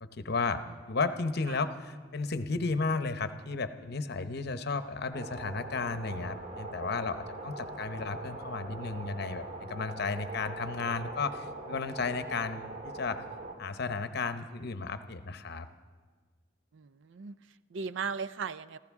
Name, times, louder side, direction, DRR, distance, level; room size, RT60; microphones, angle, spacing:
voice 1, 0.0-0.6 0.9-13.2 13.6-15.7, left 4 dB, 55° left, 10 dB, 0.8 m, -33 dB
sound 1, 5.1-13.5, right 2 dB, 35° right, 1.7 m, -42 dB
voice 2, 16.7-18.8, right 5 dB, 65° right, 15 dB, 0.4 m, -38 dB
26.0 x 15.0 x 3.6 m, 1.5 s
head